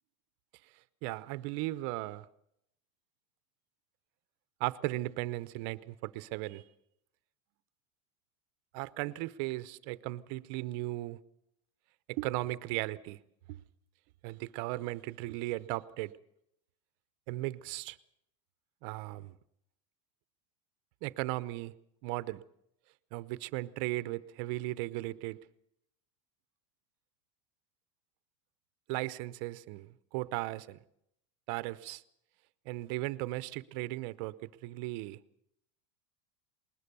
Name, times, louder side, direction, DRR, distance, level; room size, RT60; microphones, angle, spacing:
voice 1, 1.0-2.3 4.6-6.7 8.7-11.2 12.1-13.2 13.5-13.6 14.2-16.1 17.3-18.0 18.8-19.4 21.0-21.7 22.0-22.4 23.1-25.4 28.9-30.8 31.5-32.0 32.7-35.2, right 18 dB, 45° right, 0.8 m, -36 dB
20.5 x 20.0 x 6.8 m
supercardioid pair, 160°, 16 cm